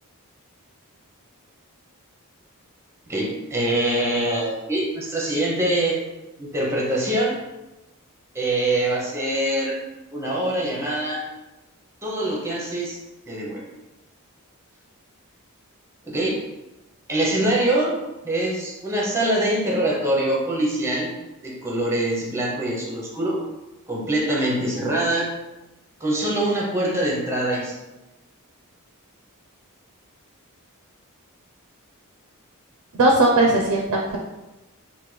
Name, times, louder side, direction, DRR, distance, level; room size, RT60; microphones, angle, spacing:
voice 1, 3.1-6.0 6.4-7.4 8.3-9.8 10.1-11.2 12.0-13.0 13.3-13.6 16.1-16.4 17.1-18.0 18.2-21.1 21.4-23.4 23.9-25.3 26.0-27.8, right 1 dB, 10° right, -3 dB, 0.6 m, -24 dB
voice 2, 32.9-34.2, right 2 dB, 75° right, 0 dB, 0.5 m, -18 dB
3.3 x 2.2 x 3.1 m, 1.0 s
head